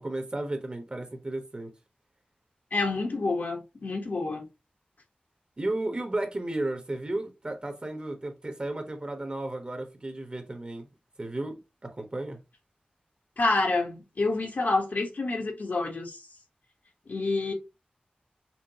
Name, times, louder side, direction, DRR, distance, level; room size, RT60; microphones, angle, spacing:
voice 1, 0.0-1.7 5.6-10.9 11.2-12.4, right 2 dB, 35° right, 1.2 m, -34 dB
voice 2, 2.7-4.5 13.4-16.2 17.1-17.5, left 3 dB, 70° left, 1.2 m, -28 dB
5.8 x 2.2 x 2.8 m
wide cardioid pair, 85°, 3 cm